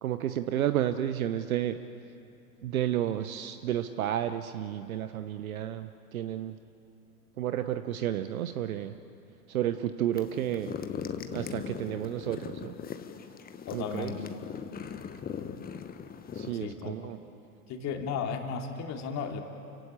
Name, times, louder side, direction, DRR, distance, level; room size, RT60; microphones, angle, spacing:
voice 1, 0.0-1.8 2.6-6.6 7.4-9.0 9.5-10.8 11.3-12.8 13.7-14.1 16.3-17.2, right 11 dB, 60° right, 10 dB, 1.0 m, -31 dB
sound 1, 10.1-16.5, left 7 dB, 20° left, 1.4 m, -40 dB
voice 2, 13.7-14.2 16.6-16.9 17.7-19.4, left 6 dB, 35° left, 3 dB, 2.8 m, -34 dB
29.0 x 16.0 x 8.7 m, 2.6 s
figure-of-eight pair, 90°, 47 cm